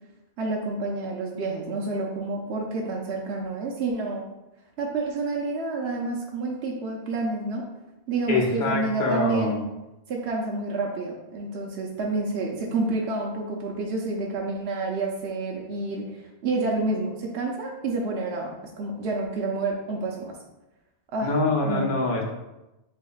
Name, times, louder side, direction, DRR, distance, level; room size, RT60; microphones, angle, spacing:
voice 1, 0.4-4.2 4.8-7.6 8.1-9.6 10.1-20.3 21.1-21.3 21.6-21.9, right 3 dB, 80° right, -1 dB, 0.9 m, -29 dB
voice 2, 8.3-9.6 21.2-22.2, left 2 dB, 55° left, 0 dB, 0.8 m, -24 dB
6.6 x 2.8 x 2.3 m, 0.97 s
omnidirectional pair, 1.1 m